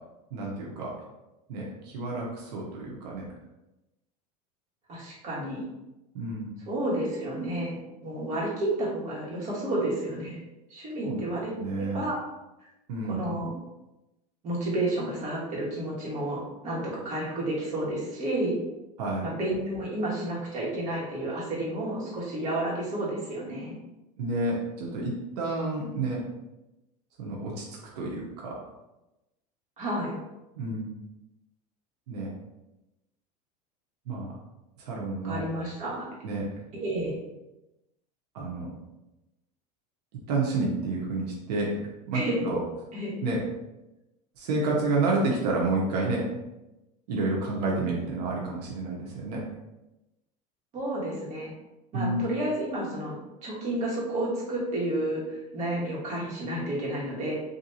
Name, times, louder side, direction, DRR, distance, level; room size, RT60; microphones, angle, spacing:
voice 1, 0.3-0.9 1.5-3.3 6.1-6.5 11.0-11.2 11.6-12.0 12.9-13.3 19.0-19.2 24.2-26.2 27.2-27.6 27.9-28.6 30.6-30.8 32.1-32.3 34.1-34.3 34.8-35.4 36.2-36.4 38.3-38.7 40.3-41.7 42.1-42.6 43.2-43.4 44.4-46.3 47.1-49.4 51.9-52.2, right 2 dB, 85° right, -3 dB, 0.8 m, -29 dB
voice 2, 4.9-5.6 6.7-10.4 10.7-12.2 13.1-13.5 14.4-18.6 19.2-23.7 29.8-30.2 35.2-36.1 36.7-37.2 42.1-42.4 42.9-43.2 50.7-51.5 51.9-53.2 53.4-57.3, right 1 dB, 35° right, -5 dB, 1.4 m, -31 dB
3.4 x 2.6 x 2.7 m, 0.96 s
supercardioid pair, 135°, 20 cm